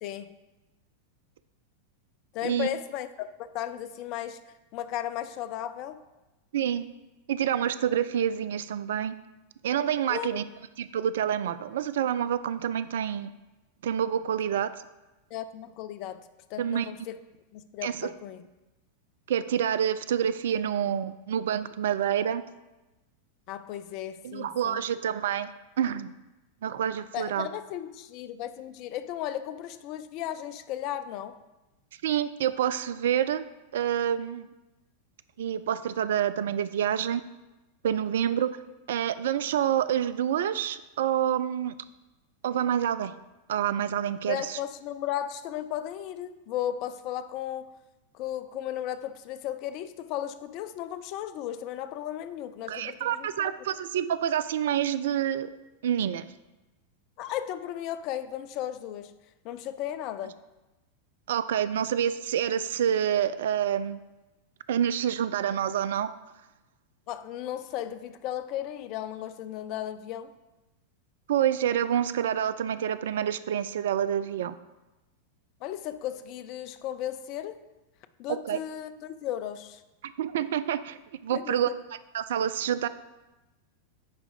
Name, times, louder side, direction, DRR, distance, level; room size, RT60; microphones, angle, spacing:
voice 1, 2.3-4.4 4.7-6.0 10.1-10.4 15.3-16.2 16.5-17.2 17.5-18.4 23.5-24.8 27.1-31.4 44.3-47.7 48.1-53.5 57.2-59.1 59.4-60.4 67.1-70.3 75.6-77.6 78.2-79.8 81.3-81.7, left 11 dB, 40° left, 12 dB, 0.4 m, -35 dB
voice 2, 6.5-6.9 7.3-9.2 9.6-10.4 10.8-13.3 13.8-14.7 16.6-16.9 17.8-18.1 19.3-22.4 24.2-25.5 25.8-26.1 26.6-27.5 32.0-33.4 33.7-34.5 35.4-37.2 37.8-38.5 38.9-41.7 42.4-43.1 43.5-44.6 52.7-55.5 55.8-56.3 61.3-64.0 64.7-66.1 71.3-74.5 78.3-78.6 80.0-81.7 82.1-82.9, right 9 dB, 60° right, 14 dB, 0.3 m, -27 dB
9.6 x 3.6 x 5.0 m, 1.0 s
figure-of-eight pair, 90°, 0 cm